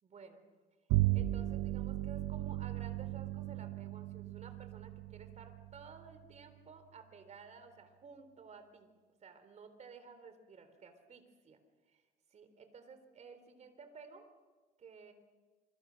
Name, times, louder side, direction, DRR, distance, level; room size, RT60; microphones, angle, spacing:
voice 1, 0.0-0.5 1.1-8.9 9.2-11.6 11.9-12.0 12.3-14.3 14.8-15.1, right 5 dB, 45° right, 9 dB, 3.8 m, -54 dB
Bowed string instrument, 0.9-6.5, right 16 dB, 90° right, 0.9 m, -36 dB
28.5 x 23.5 x 6.5 m, 1.3 s
cardioid pair, 110°, 17 cm